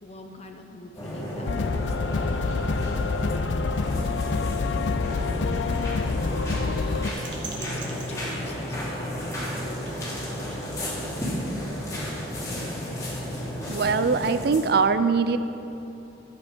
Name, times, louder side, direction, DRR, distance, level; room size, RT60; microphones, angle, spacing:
voice 1, 0.0-9.4, left 1 dB, 35° left, 4 dB, 0.9 m, -46 dB
sound 1, 1.0-14.6, equal, 20° left, 2.6 m, -33 dB
sound 2, 1.5-7.1, left 4 dB, 75° left, 0.4 m, -27 dB
sound 3, 1.6-14.2, right 4 dB, 80° right, 1.6 m, -49 dB
voice 2, 13.7-15.4, right 5 dB, 60° right, 11 dB, 0.4 m, -22 dB
12.0 x 7.8 x 5.3 m, 2.9 s
head